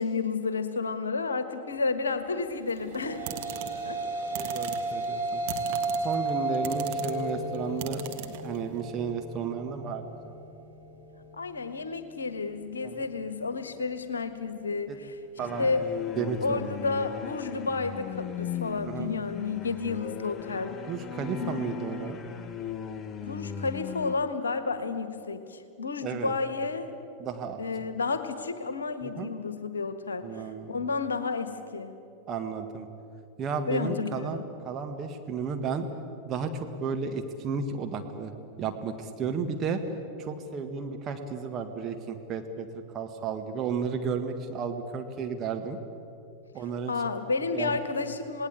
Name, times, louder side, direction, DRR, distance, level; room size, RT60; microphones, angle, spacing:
voice 1, 0.0-3.3 3.8-4.0 4.4-4.6 11.3-15.1 15.6-15.8 16.4-20.8 21.4-21.6 23.2-26.9 27.6-30.4 30.7-31.9 33.7-34.5 46.9-48.5, left 4 dB, 70° left, 10 dB, 1.5 m, -31 dB
sound 1, 2.7-8.8, right 10 dB, 50° right, 1.8 m, -40 dB
sound 2, 2.8-11.3, right 2 dB, 85° right, 3.7 m, -33 dB
voice 2, 4.2-5.4 6.0-10.3 12.8-12.9 14.9-15.0 15.4-15.7 16.2-16.7 18.8-19.1 20.9-22.2 26.0-26.3 27.2-27.6 29.0-29.3 30.2-30.8 32.3-32.9 33.4-35.9 36.2-38.3 38.6-39.8 40.2-42.7 42.9-45.8 46.5-46.9 47.5-47.8, right 5 dB, 30° right, 5 dB, 1.7 m, -33 dB
sound 3, 15.4-24.1, left 7 dB, 25° left, 1.0 m, -37 dB
27.5 x 19.0 x 8.3 m, 2.7 s
figure-of-eight pair, 90°, 0 cm